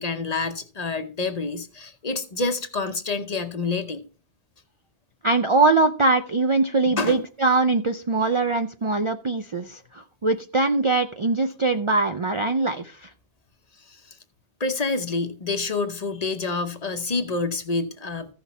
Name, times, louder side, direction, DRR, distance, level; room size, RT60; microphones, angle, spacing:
voice 1, 0.0-4.1 6.8-7.2 13.9-14.2 14.6-18.3, left 3 dB, 40° left, 0.8 m, -28 dB
voice 2, 5.2-13.1, right 3 dB, 40° right, 0.4 m, -22 dB
14.5 x 5.9 x 4.1 m
omnidirectional pair, 1.1 m